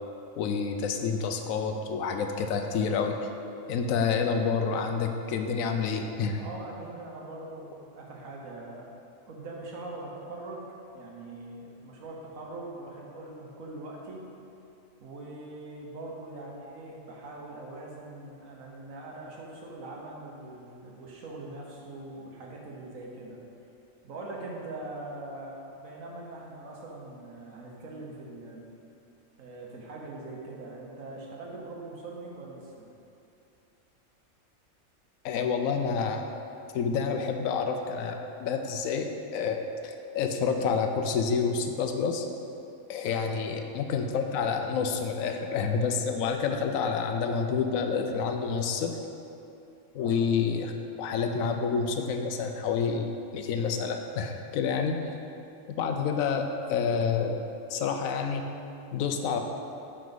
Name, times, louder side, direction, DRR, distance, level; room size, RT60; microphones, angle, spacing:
voice 1, 0.4-3.1 3.7-6.4 35.2-36.3 36.7-39.6 39.8-42.3 42.9-48.9 49.9-50.7 51.0-53.1 53.3-55.0 55.7-57.4 57.7-58.4 58.9-59.4, left 5 dB, 85° left, 5 dB, 1.0 m, -28 dB
voice 2, 6.4-8.9 9.3-10.7 10.9-14.2 15.0-23.4 24.0-28.7 29.4-32.9 43.2-43.4 50.0-50.2 59.2-59.4, right 2 dB, 85° right, -2 dB, 1.4 m, -42 dB
9.2 x 3.9 x 4.0 m, 2.7 s
omnidirectional pair, 1.4 m